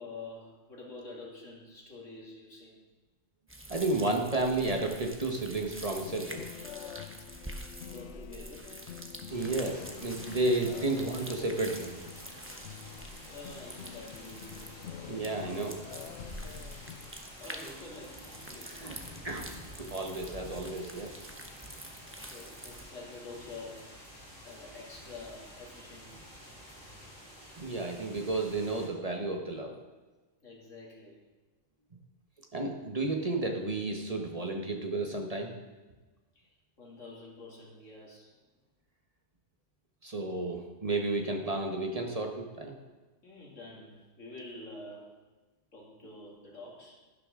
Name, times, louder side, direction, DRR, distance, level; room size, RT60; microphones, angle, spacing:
voice 1, 0.0-2.8 7.4-8.8 13.3-14.7 17.4-18.8 22.3-23.9 24.4-26.2 30.4-31.2 36.3-36.5 36.8-38.3 43.2-45.2 45.7-47.0, left 3 dB, 90° left, -3 dB, 3.1 m, -47 dB
sound 1, 3.5-22.8, right 1 dB, 10° right, 1.0 m, -47 dB
voice 2, 3.7-6.4 9.3-12.0 15.1-15.8 18.7-19.0 19.2-19.5 19.8-21.1 27.6-29.7 32.5-35.5 40.0-42.8, right 2 dB, 30° right, 2 dB, 1.2 m, -32 dB
sound 2, 6.0-17.1, left 9 dB, 70° left, 0.8 m, -47 dB
sound 3, 9.3-28.9, equal, 50° right, 4.5 m, -50 dB
11.5 x 11.5 x 3.8 m, 1.2 s
omnidirectional pair, 1.3 m